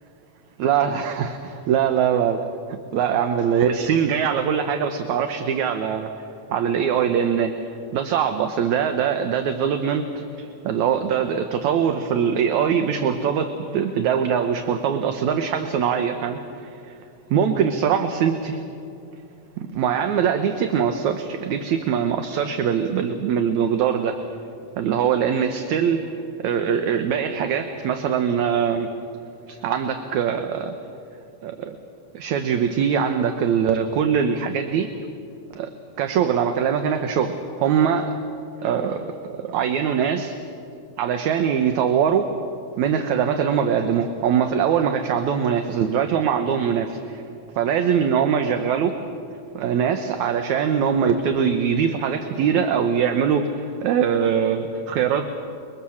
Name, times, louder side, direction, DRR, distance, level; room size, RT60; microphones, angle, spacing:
voice 1, 0.6-2.4 2.9-17.0 17.3-18.5 19.6-24.2 24.8-26.1 26.4-28.9 29.5-30.7 31.4-31.8 32.1-34.9 35.6-35.7 36.0-38.1 38.6-40.4 41.0-42.3 42.8-47.2 47.6-49.0 49.5-55.3, right 7 dB, 70° right, 6 dB, 2.3 m, -22 dB
29.0 x 23.0 x 7.2 m, 2.6 s
omnidirectional pair, 3.5 m